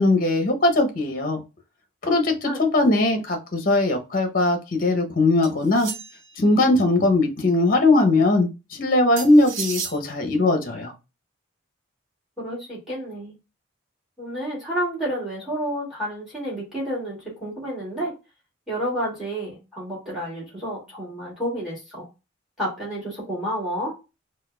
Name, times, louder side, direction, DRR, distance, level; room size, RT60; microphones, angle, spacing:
voice 1, 0.0-1.4 2.0-5.9 6.4-10.9, left 2 dB, 45° left, 5 dB, 0.7 m, -20 dB
sound 1, 5.4-6.3 9.2-10.0, right 5 dB, 90° right, 0.8 m, -32 dB
voice 2, 12.4-13.3 14.2-18.1 18.7-22.1 22.6-23.9, equal, ahead, -5 dB, 2.0 m, -30 dB
4.2 x 2.3 x 2.2 m, 0.27 s
head